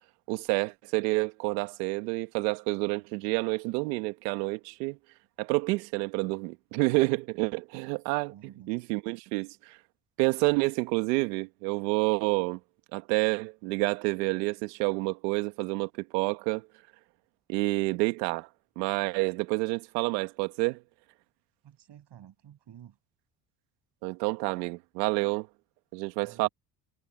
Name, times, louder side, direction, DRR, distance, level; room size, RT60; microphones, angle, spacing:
voice 1, 0.3-5.0 5.4-8.3 8.7-9.8 10.2-12.6 12.9-16.7 17.5-18.5 18.8-20.8 24.0-25.5 25.9-26.5, right 24 dB, 85° right, 1.8 m, -29 dB
voice 2, 8.3-8.7 21.6-23.0 26.2-26.5, right 10 dB, 60° right, 7.2 m, -51 dB
hypercardioid pair, 65°, 48 cm